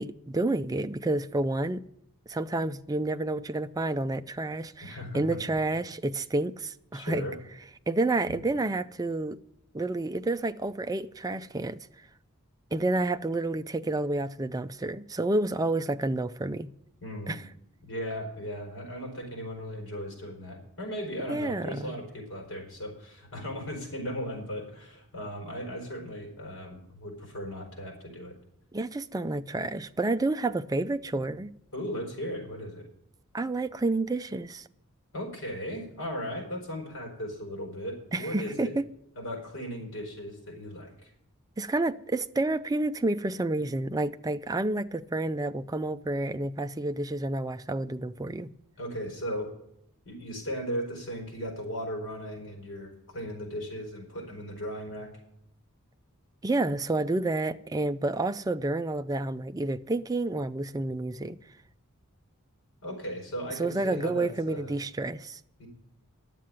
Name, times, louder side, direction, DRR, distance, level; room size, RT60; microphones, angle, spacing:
voice 1, 0.0-1.8 2.3-7.3 7.9-9.4 9.7-11.8 12.7-16.7 17.3-17.4 21.3-22.0 28.7-31.5 33.3-34.7 38.1-38.8 41.6-48.5 56.4-61.4 63.6-65.6, right 2 dB, 15° right, 0.4 m, -29 dB
voice 2, 4.8-5.4 6.9-7.4 8.3-8.4 17.0-17.4 17.8-28.3 31.7-32.9 35.1-38.7 39.2-41.1 48.8-49.5 50.0-55.1 62.8-64.7 65.6-65.7, equal, 60° left, 4.7 m, -37 dB
11.0 x 7.6 x 8.8 m
head